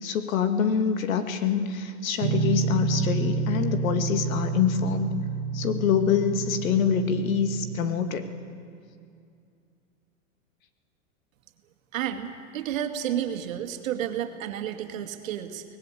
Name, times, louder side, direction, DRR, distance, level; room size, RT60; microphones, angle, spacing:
voice 1, 0.0-5.1 5.5-8.3, left 7 dB, 80° left, 8 dB, 2.2 m, -25 dB
sound 1, 2.2-7.8, right 5 dB, 55° right, 1.6 m, -29 dB
voice 2, 11.9-15.6, right 10 dB, 70° right, 6 dB, 2.3 m, -31 dB
24.0 x 19.5 x 8.5 m, 2.4 s
supercardioid pair, 135°, 41 cm